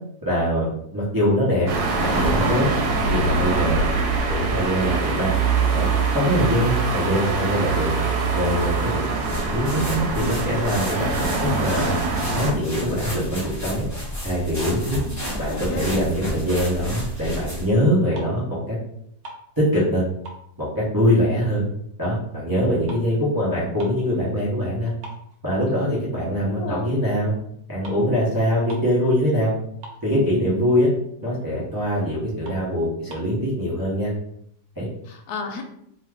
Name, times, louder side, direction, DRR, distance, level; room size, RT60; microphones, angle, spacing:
voice 1, 0.2-1.7 2.0-2.7 3.1-3.8 4.3-5.3 5.7-5.9 6.1-7.9 8.3-12.0 12.3-13.8 14.2-15.0 15.4-18.8 19.6-20.0 20.6-21.6 22.0-24.9 25.4-27.3 27.7-29.5 30.0-30.9 31.2-34.1 34.8-34.9, equal, 30° right, -7 dB, 0.4 m, -23 dB
sound 1, 1.7-12.5, right 4 dB, 85° right, 1.2 m, -23 dB
sound 2, 9.2-17.8, equal, 15° left, 0.6 m, -32 dB
voice 2, 14.9-16.0 25.8-26.0 26.4-26.9 35.0-35.6, left 4 dB, 80° left, 4 dB, 1.1 m, -34 dB
sound 3, 18.1-18.6 18.9-20.0 20.2-21.8 22.1-24.1 24.5-24.6 25.0-26.1 26.5-26.7 27.5-27.6 27.8-28.1 28.3-28.4 28.6-29.0 29.3-29.4 29.6-30.5 30.9-31.0 31.4-31.5 31.9-32.0 32.4-33.4, right 1 dB, 60° right, 0.9 m, -43 dB
2.7 x 2.3 x 3.3 m, 0.72 s
omnidirectional pair, 1.7 m